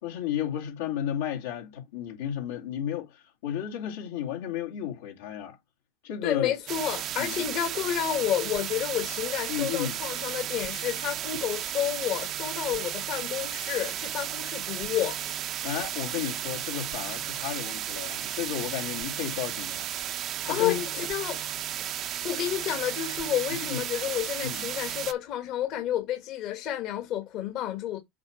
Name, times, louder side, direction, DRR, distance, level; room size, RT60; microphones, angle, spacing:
voice 1, 0.0-5.6 6.0-6.5 7.2-7.6 9.5-10.0 15.6-19.9 20.4-21.1 23.6-23.8 24.4-24.7, left 10 dB, 85° left, 2.3 m, -33 dB
voice 2, 6.2-15.2 20.4-21.4 22.2-28.0, left 11 dB, 55° left, 1.6 m, -30 dB
sound 1, 6.7-25.1, right 11 dB, 50° right, 0.8 m, -34 dB
7.7 x 4.6 x 3.1 m
supercardioid pair, 105°, 0 cm